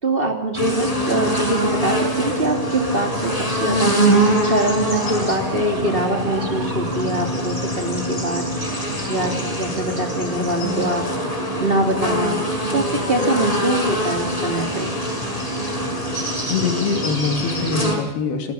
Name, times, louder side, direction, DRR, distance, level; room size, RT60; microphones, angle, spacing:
voice 1, 0.0-3.9 4.4-8.4 9.1-11.0 11.6-12.4 12.7-14.9, right 1 dB, 15° right, 3 dB, 2.1 m, -23 dB
sound 1, 0.5-18.0, right 1 dB, 10° left, 4.8 m, -24 dB
sound 2, 0.9-7.4, right 7 dB, 75° right, 1.4 m, -35 dB
voice 2, 16.5-18.5, left 5 dB, 70° left, 5 dB, 4.5 m, -23 dB
29.5 x 12.5 x 7.1 m, 1.0 s
omnidirectional pair, 4.9 m